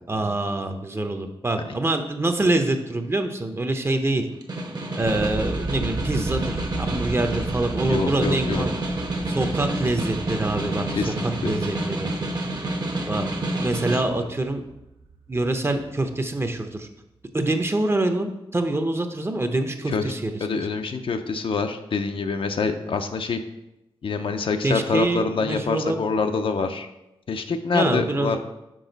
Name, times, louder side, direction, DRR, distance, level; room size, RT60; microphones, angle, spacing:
voice 1, 0.1-4.3 4.9-8.7 9.3-12.1 13.1-13.3 13.6-14.6 15.3-16.9 17.3-20.3 24.6-26.0 27.7-28.4, right 2 dB, 25° right, 6 dB, 0.6 m, -25 dB
Snare drum, 4.3-14.1, right 1 dB, 45° right, 1.0 m, -29 dB
sound 1, 5.0-16.9, right 3 dB, 85° right, 1.2 m, -36 dB
voice 2, 7.9-8.7 11.0-11.5 13.9-14.0 19.9-20.1 20.4-23.4 24.0-26.9 27.3-28.4, left 4 dB, 65° left, 7 dB, 0.5 m, -26 dB
6.2 x 4.9 x 3.9 m, 0.92 s
wide cardioid pair, 85°, 10 cm